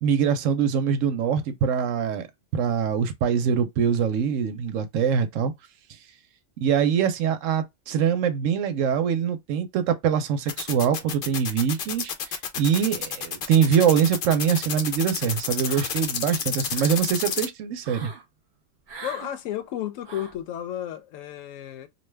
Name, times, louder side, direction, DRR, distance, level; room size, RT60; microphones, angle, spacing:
voice 1, 0.0-2.3 2.5-5.5 6.6-12.1 12.6-18.1, right 7 dB, 80° right, 1.0 m, -23 dB
sound 1, 10.5-17.5, left 7 dB, 60° left, 0.6 m, -30 dB
sound 2, 15.6-16.2 16.5-17.1 17.8-18.2 18.9-19.3 20.0-20.4, right 4 dB, 50° right, 0.8 m, -41 dB
voice 2, 19.0-21.9, left 11 dB, 75° left, 0.9 m, -33 dB
2.7 x 2.2 x 3.2 m
omnidirectional pair, 1.4 m